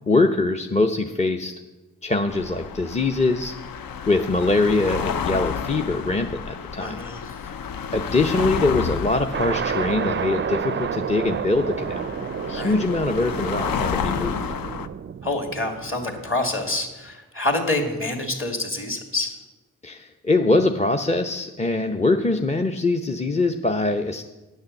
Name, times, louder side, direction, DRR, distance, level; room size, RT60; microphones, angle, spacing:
voice 1, 0.1-1.5 2.0-3.5 4.1-7.0 7.9-12.1 12.5-14.4 19.8-24.2, left 2 dB, 20° left, 4 dB, 0.7 m, -23 dB
sound 1, 2.3-14.9, left 7 dB, 70° left, 0.6 m, -31 dB
voice 2, 6.8-7.3 12.5-12.7 15.2-19.3, left 2 dB, 35° left, 3 dB, 2.4 m, -27 dB
sound 2, 9.3-16.9, right 7 dB, 35° right, 0.4 m, -30 dB
10.0 x 6.5 x 7.1 m, 1.1 s
cardioid pair, 45°, 35 cm